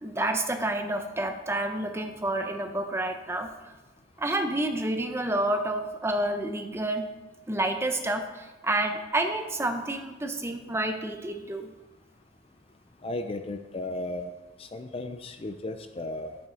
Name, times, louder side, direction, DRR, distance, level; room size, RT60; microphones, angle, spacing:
voice 1, 0.0-3.5 4.2-7.1 7.5-11.7, right 1 dB, 15° right, 6 dB, 0.7 m, -29 dB
voice 2, 13.0-14.3 14.6-16.4, left 2 dB, 30° left, 8 dB, 0.5 m, -35 dB
11.0 x 8.7 x 3.9 m, 1.1 s
head